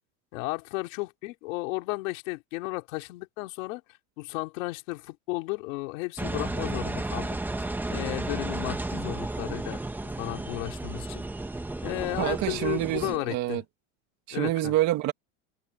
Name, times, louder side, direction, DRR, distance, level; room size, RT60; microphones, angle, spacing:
voice 1, 0.3-3.8 4.2-7.4 7.9-9.8 10.2-11.3 11.8-13.6 14.3-14.7, left 23 dB, 80° left, 3.1 m, -34 dB
Engine, 6.2-13.2, right 2 dB, 5° right, 1.4 m, -33 dB
voice 2, 12.2-13.6 14.3-15.1, right 15 dB, 45° right, 2.2 m, -27 dB
cardioid pair, 160°, 39 cm